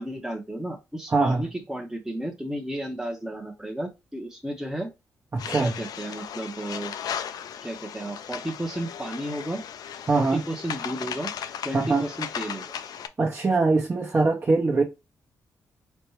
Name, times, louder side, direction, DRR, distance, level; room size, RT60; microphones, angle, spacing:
voice 1, 0.0-4.9 5.6-6.9 7.6-9.6 10.2-11.3 11.6-12.7, right 1 dB, 5° right, 0.7 m, -33 dB
voice 2, 1.1-1.5 5.3-5.7 10.1-10.4 11.7-12.1 13.2-14.8, right 3 dB, 35° right, 0.8 m, -22 dB
sound 1, 5.4-13.1, left 8 dB, 75° left, 0.4 m, -36 dB
4.2 x 2.2 x 3.0 m
supercardioid pair, 55°, 7 cm